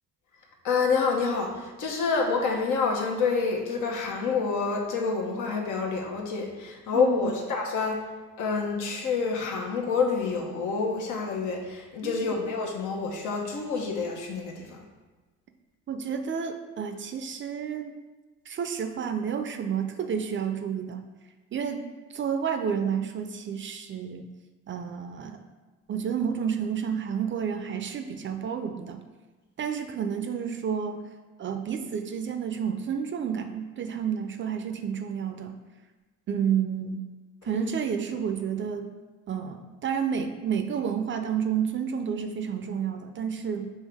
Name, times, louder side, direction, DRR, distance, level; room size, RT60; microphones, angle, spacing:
voice 1, 0.6-8.0 8.4-14.8 37.4-37.7, left 4 dB, 85° left, 0 dB, 0.9 m, -28 dB
voice 2, 6.9-7.3 12.0-12.3 15.9-18.0 18.5-21.1 21.5-21.8 22.1-24.3 24.7-25.4 25.9-29.0 29.6-31.0 31.4-35.6 36.3-37.0 37.4-38.9 39.3-43.7, right 7 dB, 40° right, 7 dB, 0.4 m, -30 dB
5.4 x 2.9 x 3.4 m, 1.2 s
cardioid pair, 90°, 30 cm